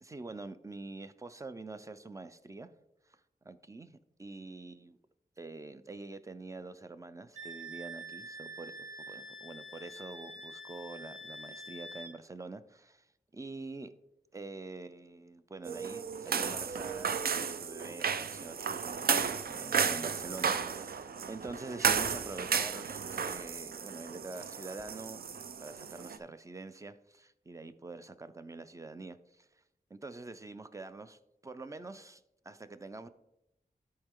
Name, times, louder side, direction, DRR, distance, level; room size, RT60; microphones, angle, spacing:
voice 1, 0.0-2.7 3.1-3.2 3.4-5.0 5.4-8.7 9.1-13.1 13.3-13.9 14.3-29.5 29.9-33.1, right 3 dB, 20° right, 12 dB, 0.5 m, -46 dB
Wind instrument woodwind instrument, 7.3-12.1, right 1 dB, 55° right, 2.5 m, -46 dB
sound 1, 15.6-26.2, right 6 dB, 90° right, 0.5 m, -33 dB
13.0 x 4.4 x 3.7 m, 0.87 s
wide cardioid pair, 110°, 15 cm